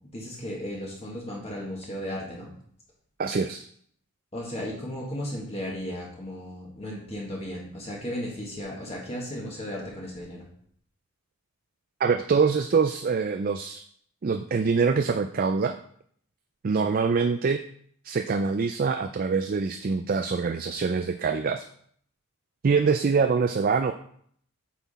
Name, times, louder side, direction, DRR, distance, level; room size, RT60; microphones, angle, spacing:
voice 1, 0.1-2.5 4.3-10.5, equal, 30° left, -3 dB, 1.7 m, -35 dB
voice 2, 3.2-3.6 12.0-13.8 14.2-15.8 16.6-17.6 18.0-21.6 22.6-23.9, right 5 dB, 40° right, 8 dB, 0.4 m, -24 dB
8.2 x 6.0 x 4.2 m, 0.63 s
head